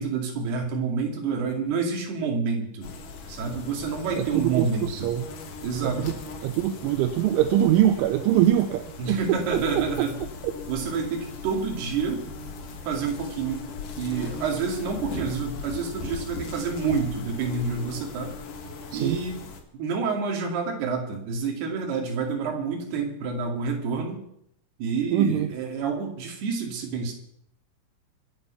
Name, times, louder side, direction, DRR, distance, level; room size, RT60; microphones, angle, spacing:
voice 1, 0.0-2.9 3.3-5.1 5.6-6.2 9.0-10.1 10.7-12.3 12.8-18.3 18.9-19.4 19.7-24.2 24.8-27.1, right 5 dB, 60° right, 2 dB, 4.2 m, -28 dB
sound 1, 2.8-19.6, left 4 dB, 55° left, 2.7 m, -39 dB
voice 2, 4.2-5.3 5.8-6.1 6.4-10.1 18.9-19.2 25.1-25.5, right 11 dB, 80° right, 8 dB, 3.2 m, -23 dB
25.0 x 8.5 x 5.7 m, 0.73 s
omnidirectional pair, 5.6 m